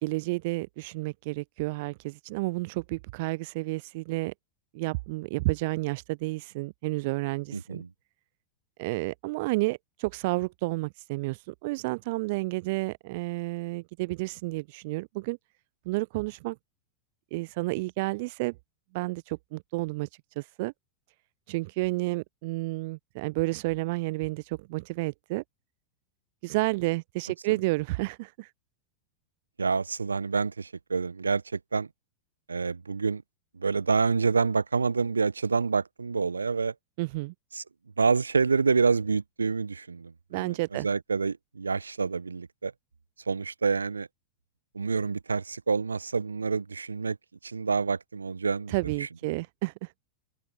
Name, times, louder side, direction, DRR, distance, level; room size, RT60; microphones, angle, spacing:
voice 1, 0.0-4.3 4.7-7.8 8.8-15.4 15.9-16.6 17.3-18.6 18.9-20.1 20.4-20.7 21.5-25.4 26.4-28.5 37.0-37.3 40.3-40.9 48.7-49.9, right 23 dB, 50° right, 0.4 m, -31 dB
voice 2, 7.5-7.9 29.6-31.9 32.5-33.2 33.5-36.7 37.5-37.6 38.0-42.7 43.3-44.1 44.7-47.2 47.4-49.1, right 4 dB, 80° right, 1.1 m, -27 dB
open air
figure-of-eight pair, 90°, 0 cm